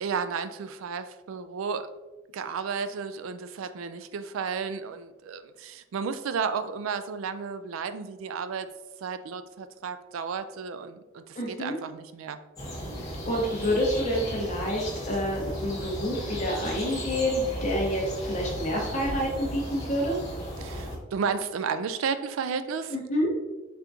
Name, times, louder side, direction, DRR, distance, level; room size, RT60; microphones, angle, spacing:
voice 1, 0.0-1.9 2.3-8.7 9.0-12.4 20.6-23.0, right 6 dB, 90° right, 11 dB, 0.3 m, -33 dB
voice 2, 11.3-11.8 13.0-20.2 22.9-23.3, equal, 35° left, -2 dB, 0.7 m, -28 dB
sound 1, 12.6-21.0, equal, 20° left, 1.0 m, -35 dB
4.3 x 3.5 x 2.5 m, 1.1 s
head